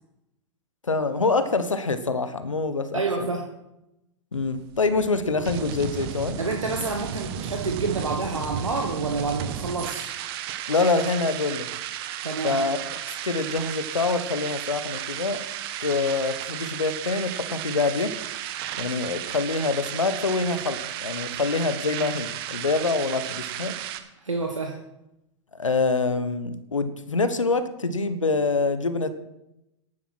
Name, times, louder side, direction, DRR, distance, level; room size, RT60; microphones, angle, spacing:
voice 1, 0.8-3.3 4.3-6.4 10.7-11.7 12.4-12.8 13.2-15.4 15.8-18.2 18.8-23.8 25.5-29.2, left 3 dB, 90° left, 11 dB, 1.1 m, -25 dB
voice 2, 2.9-3.5 6.4-10.1 12.2-12.6 24.2-24.8, right 4 dB, 85° right, 3 dB, 1.5 m, -28 dB
sound 1, 4.3-24.0, right 10 dB, 50° right, 1.4 m, -34 dB
11.0 x 10.0 x 6.1 m, 0.88 s
figure-of-eight pair, 100°, 16 cm